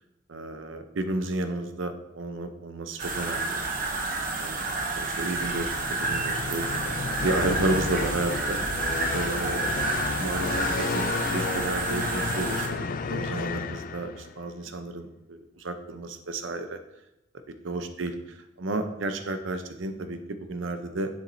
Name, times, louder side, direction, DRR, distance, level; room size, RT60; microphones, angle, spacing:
voice 1, 0.3-3.6 4.4-4.6 5.0-5.7 6.0-6.7 7.2-9.9 10.2-16.8 17.6-18.1 18.6-21.1, right 2 dB, 85° right, 8 dB, 0.7 m, -32 dB
sound 1, 3.0-12.7, right 3 dB, 45° right, 0.8 m, -30 dB
sound 2, 5.7-14.4, left 5 dB, 45° left, 0.3 m, -32 dB
7.1 x 7.1 x 2.7 m, 0.90 s
head